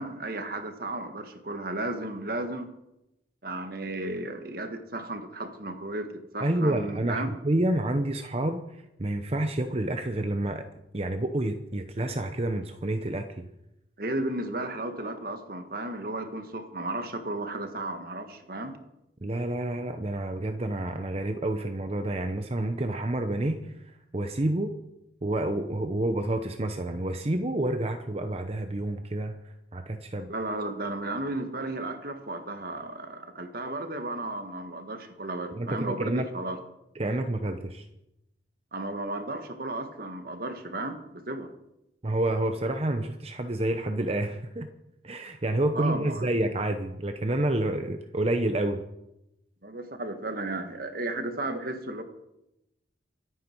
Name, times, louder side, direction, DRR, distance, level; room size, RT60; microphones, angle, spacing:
voice 1, 0.0-2.7 3.4-7.3 14.0-18.8 30.3-36.6 38.7-41.5 45.7-46.3 49.6-52.0, right 2 dB, 55° right, 6 dB, 1.7 m, -34 dB
voice 2, 6.4-8.6 9.0-10.7 10.9-13.5 19.2-23.7 24.1-24.7 25.2-29.4 29.7-30.3 35.5-36.3 36.9-37.8 42.0-44.7 45.0-48.8, right 1 dB, 35° right, 7 dB, 0.8 m, -29 dB
24.5 x 9.2 x 4.6 m, 0.88 s
head